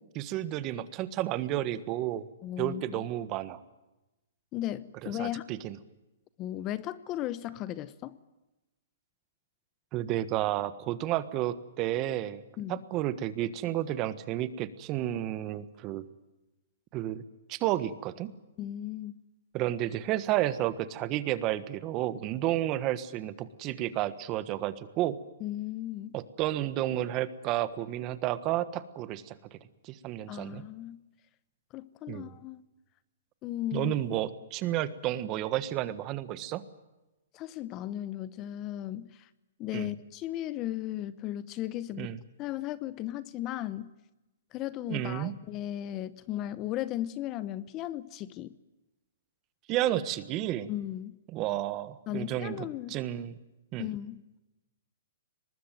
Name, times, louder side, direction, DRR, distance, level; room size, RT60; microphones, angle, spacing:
voice 1, 0.1-2.3 2.6-3.6 5.0-5.8 9.9-12.4 12.7-16.0 16.9-17.2 17.5-18.3 19.5-25.2 26.1-29.6 29.8-30.6 32.1-32.3 33.7-36.6 39.7-39.9 42.0-42.2 44.9-45.3 49.7-50.7 51.3-53.4 53.7-53.9, right 13 dB, 30° right, 15 dB, 1.4 m, -31 dB
voice 2, 2.4-3.0 4.5-5.4 6.4-8.2 12.6-12.8 18.6-19.2 25.4-26.1 30.3-31.0 31.7-32.6 33.4-33.9 37.3-39.3 39.6-42.1 42.4-43.9 44.5-48.5 50.7-51.2 52.1-53.0 53.8-54.2, left 13 dB, 25° left, 17 dB, 0.9 m, -36 dB
23.5 x 20.0 x 9.2 m, 1.0 s
hypercardioid pair, 145°, 0 cm